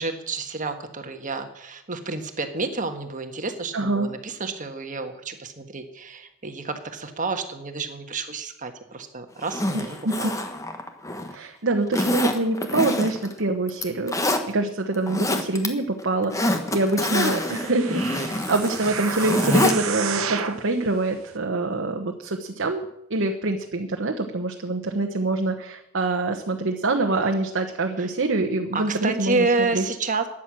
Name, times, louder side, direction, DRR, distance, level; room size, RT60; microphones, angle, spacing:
voice 1, 0.0-10.4 28.0-28.1 28.7-30.3, right 3 dB, 40° right, 7 dB, 1.5 m, -29 dB
voice 2, 3.7-4.1 9.7-10.3 11.3-22.8 23.1-29.8, right 2 dB, 60° right, 3 dB, 1.1 m, -25 dB
Zipper (clothing), 9.4-11.3 11.9-13.3 13.7-14.4 14.9-15.7 16.0-19.8 20.1-20.2, left 1 dB, 15° left, 1.3 m, -26 dB
sound 1, 17.1-20.7 21.3-21.4, right 7 dB, 90° right, 1.1 m, -32 dB
13.5 x 10.0 x 7.6 m, 0.81 s
head